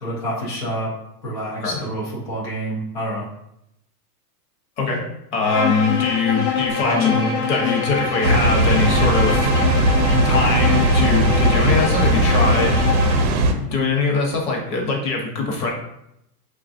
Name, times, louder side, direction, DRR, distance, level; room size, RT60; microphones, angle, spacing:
voice 1, 0.0-0.9 1.2-3.3 6.8-7.4, equal, 25° left, -6 dB, 0.4 m, -27 dB
voice 2, 5.3-9.5 10.2-12.8 13.6-15.7, left 4 dB, 45° left, 0 dB, 1.0 m, -22 dB
Bowed string instrument, 5.4-13.3, left 5 dB, 70° left, 1.1 m, -24 dB
Water, 8.2-13.5, right 1 dB, 65° right, 0.7 m, -18 dB
5.5 x 2.4 x 2.6 m, 0.81 s
supercardioid pair, 175°, 48 cm